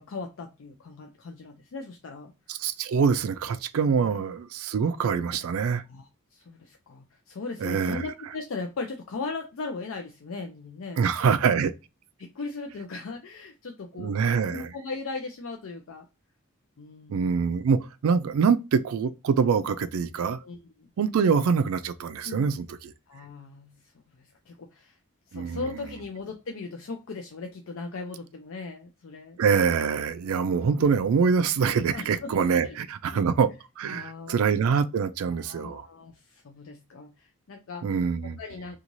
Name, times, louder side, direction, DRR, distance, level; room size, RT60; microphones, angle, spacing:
voice 1, 0.0-2.3 5.9-11.0 12.2-16.1 16.8-17.3 20.4-20.9 22.2-22.5 23.1-23.7 24.1-24.9 25.3-29.4 31.9-32.3 32.6-32.8 33.1-33.3 33.9-34.5 35.3-37.8 38.4-38.8, left 3 dB, 65° left, 0.4 m, -38 dB
voice 2, 2.5-5.8 7.6-8.1 11.0-11.7 14.0-14.7 17.1-20.4 21.0-22.9 25.3-25.6 29.4-33.5 33.8-35.9 37.8-38.4, right 6 dB, 75° right, 0.3 m, -24 dB
2.6 x 2.3 x 3.0 m
head